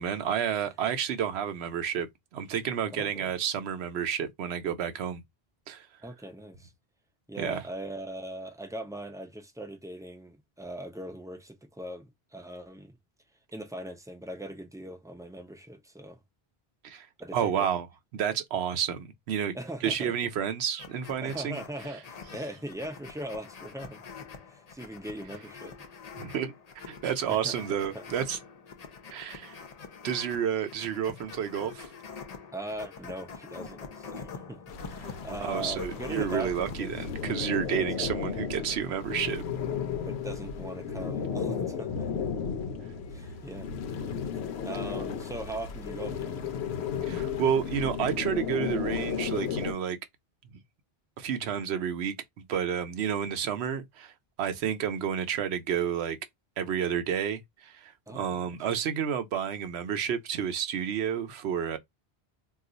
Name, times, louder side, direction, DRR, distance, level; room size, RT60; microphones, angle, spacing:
voice 1, 0.0-2.1 2.3-5.2 5.7-5.9 7.4-7.6 16.8-17.1 17.3-17.9 18.1-19.5 19.8-21.6 26.2-26.5 26.8-28.4 29.1-29.6 30.0-31.9 35.0-35.1 35.5-39.4 47.1-50.0 51.2-54.1 54.4-56.2 56.6-61.8, right 8 dB, 85° right, 0.9 m, -30 dB
voice 2, 2.9-3.3 6.0-6.7 7.3-13.0 13.5-16.2 17.2-17.7 19.5-20.1 21.2-24.0 24.5-25.8 27.3-28.2 32.5-36.9 37.7-38.1 40.1-42.3 43.1-43.7 44.2-46.5 58.1-58.2, right 1 dB, 5° right, 0.3 m, -40 dB
sound 1, 20.8-36.8, left 5 dB, 45° left, 0.6 m, -45 dB
sound 2, 34.7-49.7, left 7 dB, 90° left, 0.9 m, -34 dB
2.4 x 2.4 x 3.8 m
omnidirectional pair, 1.1 m